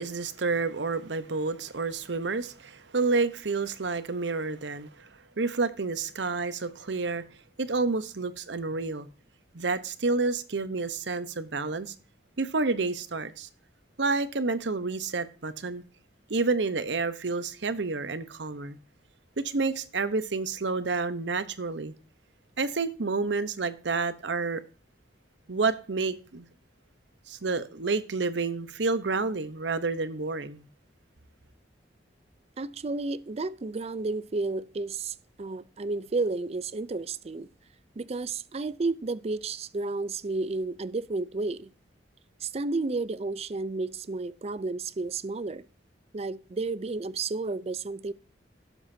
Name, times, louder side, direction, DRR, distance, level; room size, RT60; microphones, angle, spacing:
voice 1, 0.0-5.1 5.4-7.2 7.6-9.1 9.5-11.9 12.4-13.5 14.0-15.8 16.3-18.8 19.4-21.9 22.6-24.6 25.5-26.4 27.3-30.7, right 3 dB, 75° right, 0.9 m, -29 dB
voice 2, 32.6-37.5 38.0-41.7 42.4-45.7 46.1-48.1, right 3 dB, 35° right, 0.4 m, -32 dB
17.0 x 7.2 x 2.7 m
head